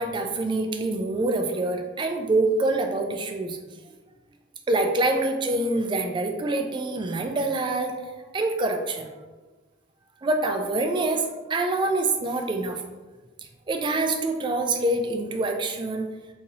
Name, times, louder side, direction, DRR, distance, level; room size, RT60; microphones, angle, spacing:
voice 1, 0.0-3.6 4.7-8.0 8.3-9.1 10.2-12.8 13.7-16.1, right 2 dB, 25° right, 4 dB, 0.3 m, -25 dB
3.0 x 2.7 x 3.9 m, 1.2 s
head